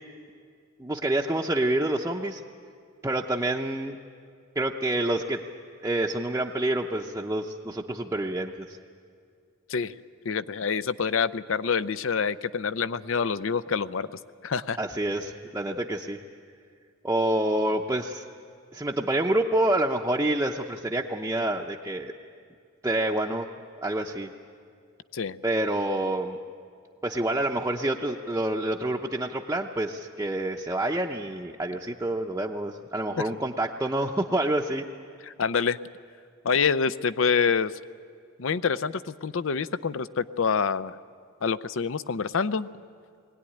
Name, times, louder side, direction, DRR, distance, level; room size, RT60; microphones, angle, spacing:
voice 1, 0.8-2.4 3.0-4.0 4.6-5.4 5.8-8.7 14.8-16.2 17.0-18.2 18.7-22.1 22.8-23.5 23.8-24.3 25.4-26.4 27.0-34.8, right 1 dB, 15° right, -1 dB, 0.7 m, -27 dB
voice 2, 10.2-14.1 14.4-14.8 25.1-25.4 35.2-35.8 36.4-37.7 38.4-41.0 41.4-42.7, left 6 dB, 65° left, 16 dB, 0.5 m, -26 dB
22.0 x 17.5 x 10.0 m, 2.2 s
head